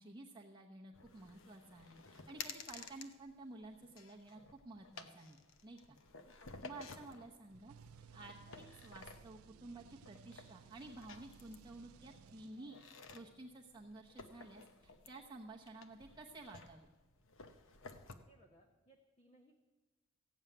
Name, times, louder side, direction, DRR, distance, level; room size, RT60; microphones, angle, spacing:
voice 1, 0.0-4.4 4.6-6.0 6.6-7.8 8.1-12.8 13.1-16.9, right 2 dB, 20° right, -4 dB, 0.9 m, -53 dB
sound 1, 0.9-18.2, left 4 dB, 65° left, 0.9 m, -55 dB
voice 2, 6.2-6.9 18.3-19.6, right 1 dB, 30° left, 3 dB, 1.0 m, -67 dB
sound 2, 7.5-13.0, right 7 dB, 70° right, 0.3 m, -60 dB
15.5 x 7.2 x 9.2 m, 1.2 s
head